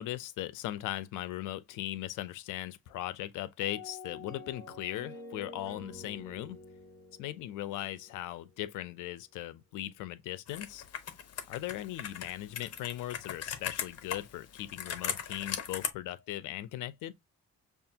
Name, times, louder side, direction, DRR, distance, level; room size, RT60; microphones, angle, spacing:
voice 1, 0.0-6.6 7.2-10.9 11.5-17.1, left 14 dB, 90° left, 0.5 m, -38 dB
sound 1, 3.6-8.8, left 2 dB, 10° left, 1.5 m, -49 dB
Computer keyboard, 10.5-15.9, left 8 dB, 55° left, 0.9 m, -39 dB
6.6 x 2.4 x 2.7 m
cardioid pair, 90°, 30 cm